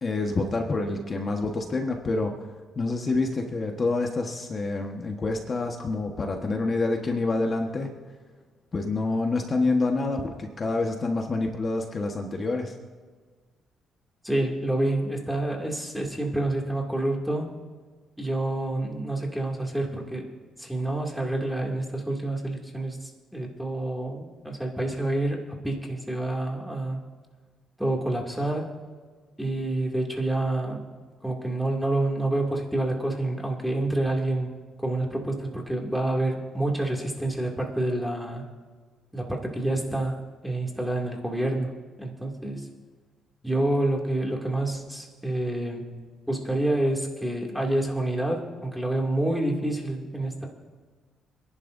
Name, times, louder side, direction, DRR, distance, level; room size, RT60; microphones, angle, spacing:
voice 1, 0.0-2.5 2.7-7.9 8.7-12.7, left 3 dB, 40° left, 2 dB, 1.4 m, -27 dB
voice 2, 14.2-17.6 18.2-20.3 20.6-27.0 27.8-28.7 29.4-30.8 31.2-34.5 34.8-38.5 39.1-40.1 40.4-42.7 43.4-45.9 46.3-50.5, right 1 dB, ahead, 0 dB, 2.5 m, -28 dB
26.5 x 11.0 x 2.7 m, 1.5 s
cardioid pair, 90°, 0 cm